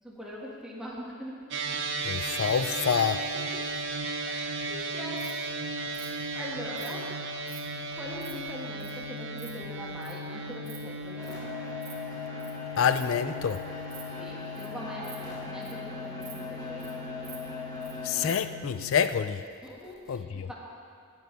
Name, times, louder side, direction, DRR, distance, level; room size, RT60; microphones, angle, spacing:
voice 1, 0.0-1.4 4.2-5.4 5.8-7.1 7.9-11.3 14.2-16.9 19.6-20.5, equal, 5° right, -5 dB, 1.8 m, -42 dB
sound 1, 1.5-19.0, right 2 dB, 60° right, 0.8 m, -36 dB
voice 2, 2.0-3.3 12.8-13.6 18.0-19.4 20.1-20.5, left 7 dB, 65° left, 11 dB, 0.4 m, -27 dB
Insect, 4.9-5.3 5.9-6.1 6.8-6.9 7.4-7.6 8.0-8.3 8.8-8.9 9.2-9.5 10.0-10.2 10.5-10.8 11.0-11.3 11.7-11.9 12.2-12.5 12.9-13.1 13.5-13.6 13.9-14.0 14.4-14.7 14.9-15.8 16.2-16.3 16.6-16.9 17.2-17.9 18.2-18.4, right 10 dB, 80° right, 1.8 m, -48 dB
sound 2, 11.2-18.3, left 4 dB, 15° left, 2.5 m, -40 dB
19.5 x 7.8 x 3.4 m, 2.4 s
head